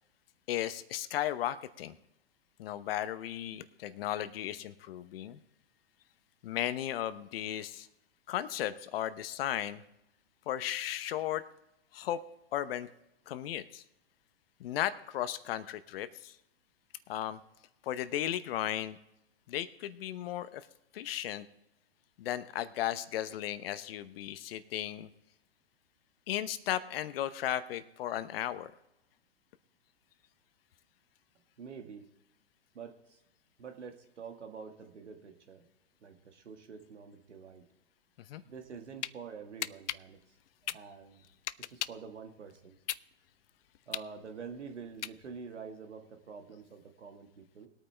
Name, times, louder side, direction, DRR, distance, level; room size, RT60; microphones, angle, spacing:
voice 1, 0.5-1.9 2.6-5.4 6.4-7.9 8.3-9.8 10.5-11.4 11.9-12.2 12.5-12.9 13.3-13.8 14.6-16.4 17.1-17.4 17.8-19.0 19.5-20.7 20.9-21.5 22.2-25.1 26.3-28.7 38.3-38.4, left 12 dB, 55° left, 14 dB, 1.0 m, -35 dB
voice 2, 31.6-32.1 32.7-33.2 33.6-35.7 36.0-37.7 38.4-40.2 40.6-41.2 41.6-42.8 43.9-47.7, right 6 dB, 80° right, 5 dB, 1.9 m, -47 dB
sound 1, 38.6-39.1 39.6-42.1 42.5-45.5, left 12 dB, 80° left, 0.5 m, -38 dB
20.5 x 9.0 x 3.4 m, 0.88 s
hypercardioid pair, 115°, 35 cm